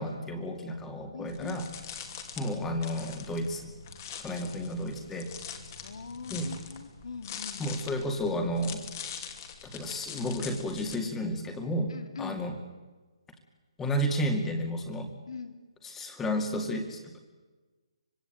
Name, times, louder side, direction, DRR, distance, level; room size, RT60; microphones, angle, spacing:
voice 1, 0.0-1.7 2.4-3.7 4.2-5.3 6.3-6.5 7.6-8.9 9.6-12.6 13.8-15.1 15.8-17.2, equal, 10° left, 5 dB, 2.3 m, -32 dB
voice 2, 1.1-1.6 5.6-7.6 11.9-12.4 15.3-15.5, left 5 dB, 65° left, 6 dB, 2.9 m, -42 dB
sound 1, 1.3-11.0, left 7 dB, 35° left, 2.8 m, -43 dB
25.5 x 21.0 x 9.0 m, 1.3 s
hypercardioid pair, 165°, 3 cm